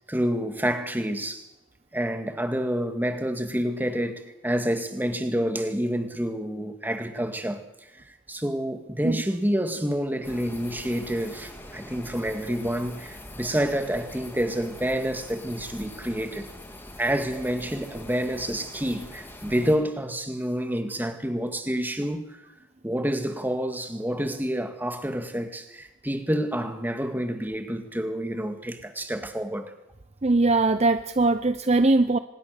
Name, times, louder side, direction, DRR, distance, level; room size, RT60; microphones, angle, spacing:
voice 1, 0.1-1.5 1.9-7.6 8.1-16.5 17.0-22.4 22.8-29.7, equal, 10° right, 2.1 m, -28 dB
sound 1, 10.2-19.8, left 1 dB, 10° left, 3.0 m, -43 dB
voice 2, 30.2-32.2, right 2 dB, 35° right, 0.7 m, -21 dB
25.0 x 20.5 x 6.7 m
head